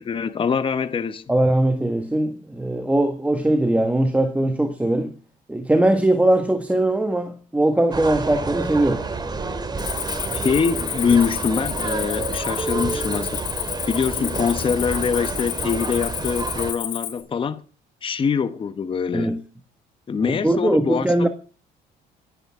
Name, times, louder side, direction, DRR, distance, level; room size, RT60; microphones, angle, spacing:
voice 1, 0.0-1.2 10.3-13.4 13.9-17.6 18.0-19.3 20.1-21.3, left 6 dB, 30° left, 1.1 m, -24 dB
voice 2, 1.3-5.1 5.5-9.0 19.1-19.4 20.2-21.3, right 1 dB, 10° right, 1.6 m, -20 dB
sound 1, 7.9-16.7, right 3 dB, 25° right, 2.5 m, -29 dB
Cricket, 9.8-17.2, left 9 dB, 55° left, 4.5 m, -31 dB
27.5 x 11.0 x 3.7 m
cardioid pair, 110°, 17 cm